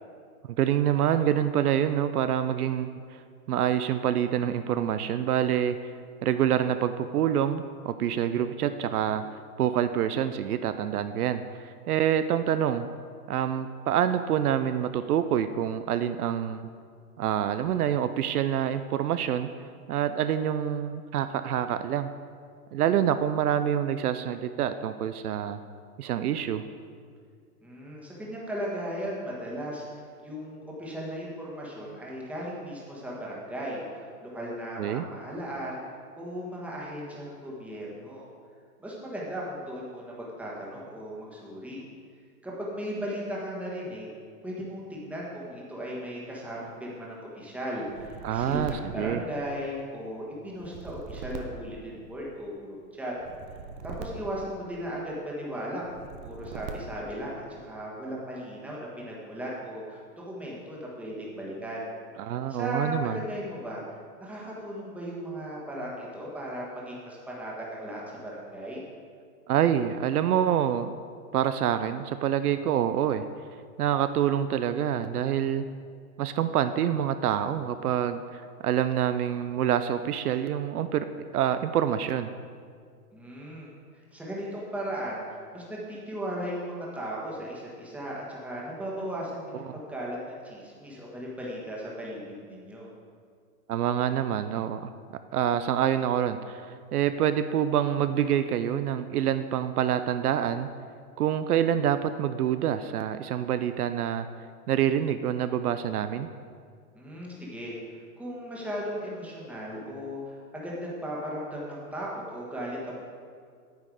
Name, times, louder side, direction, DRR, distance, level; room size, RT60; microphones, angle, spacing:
voice 1, 0.6-3.2 3.5-5.9 6.2-12.9 13.3-16.7 17.2-19.5 19.9-22.1 22.7-25.6 26.0-26.6 34.8-35.0 48.2-49.2 62.2-63.2 69.5-70.9 71.3-73.2 73.8-75.7 76.2-81.1 81.3-82.3 89.6-89.7 93.7-94.9 95.3-100.7 101.2-104.3 104.7-106.3, right 10 dB, 70° right, 10 dB, 0.6 m, -26 dB
voice 2, 27.6-35.9 36.2-38.3 38.8-41.8 42.4-44.1 44.4-53.1 53.8-62.0 62.5-63.8 64.2-68.8 83.1-83.7 83.9-85.2 85.5-92.9 106.9-107.7 108.2-113.0, equal, 5° right, -5 dB, 1.4 m, -36 dB
sound 1, 47.8-49.8 50.5-52.5 53.2-55.1 55.8-57.2, right 5 dB, 30° right, 0.6 m, -42 dB
9.3 x 7.7 x 4.8 m, 2.1 s
hypercardioid pair, 145°, 46 cm